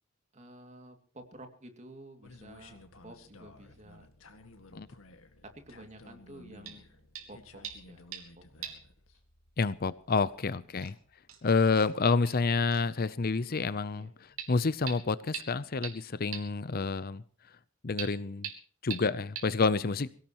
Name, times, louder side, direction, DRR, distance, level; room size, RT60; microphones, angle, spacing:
voice 1, 0.3-4.1 5.4-8.1 8.3-8.7 10.1-10.5 13.9-14.1 19.8-20.1, right 1 dB, 35° right, 6 dB, 2.5 m, -52 dB
sound 1, 2.2-15.1, left 2 dB, 80° left, 2.0 m, -56 dB
sound 2, 6.7-6.8 7.2-7.3 7.6-8.3 8.6-8.9 9.2-9.3 10.3-10.4 10.8-10.9 11.3-11.4 11.8-11.9 12.3-12.4 12.7-12.8 14.4-14.5 14.9-15.0 15.3-15.4 15.8-15.9 16.3-16.4 18.0-18.1 18.4-18.5 18.9-19.0 19.4-19.5, right 9 dB, 85° right, 3.2 m, -40 dB
voice 2, 9.6-10.9 11.4-14.1 14.5-17.2 17.8-18.5 18.8-20.1, left 4 dB, 45° left, 16 dB, 0.6 m, -28 dB
24.0 x 16.5 x 3.0 m, 0.42 s
head